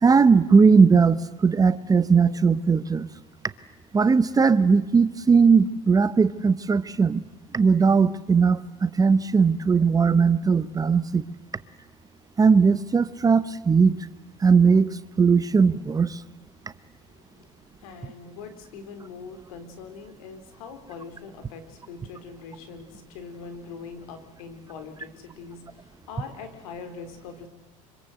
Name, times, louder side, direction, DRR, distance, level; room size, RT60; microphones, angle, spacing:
voice 1, 0.0-3.1 3.9-7.2 7.5-11.3 12.4-14.1 14.4-16.2, right 5 dB, 20° right, 15 dB, 1.0 m, -19 dB
voice 2, 17.8-27.5, left 5 dB, 85° left, 8 dB, 4.2 m, -42 dB
25.5 x 24.5 x 8.1 m, 1.1 s
supercardioid pair, 105°, 18 cm